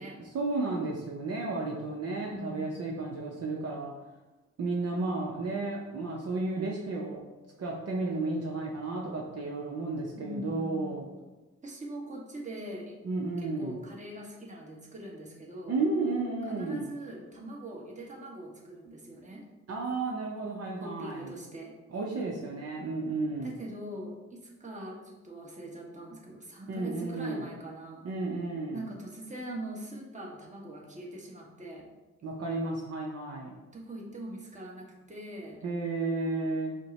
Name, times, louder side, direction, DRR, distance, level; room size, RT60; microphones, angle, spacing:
voice 1, 0.3-3.9 4.6-7.2 7.6-11.0 13.0-13.8 15.7-16.9 19.7-21.3 21.9-23.5 26.7-27.4 28.0-28.8 32.2-33.5 35.6-36.8, right 3 dB, 55° right, -2 dB, 0.7 m, -32 dB
voice 2, 2.3-3.0 10.2-11.2 11.6-13.0 13.4-15.8 16.5-19.4 20.8-21.7 23.4-28.1 28.7-31.9 33.7-35.6, right 1 dB, 25° right, -3 dB, 1.3 m, -42 dB
5.1 x 2.2 x 4.1 m, 1.1 s
cardioid pair, 60°, 30 cm